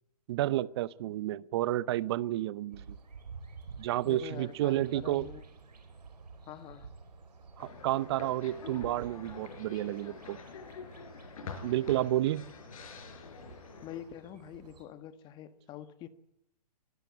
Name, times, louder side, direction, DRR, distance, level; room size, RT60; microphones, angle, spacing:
voice 1, 0.3-3.0 3.8-5.3 7.6-10.4 11.6-12.5, right 14 dB, 40° right, 0.8 m, -31 dB
sound 1, 2.7-14.9, right 5 dB, 85° right, 4.6 m, -51 dB
voice 2, 4.0-5.5 6.5-6.9 13.8-16.1, left 10 dB, 20° left, 1.5 m, -45 dB
sound 2, 7.6-14.0, left 5 dB, 60° left, 6.0 m, -46 dB
21.5 x 15.0 x 9.3 m
hypercardioid pair, 145°, 20 cm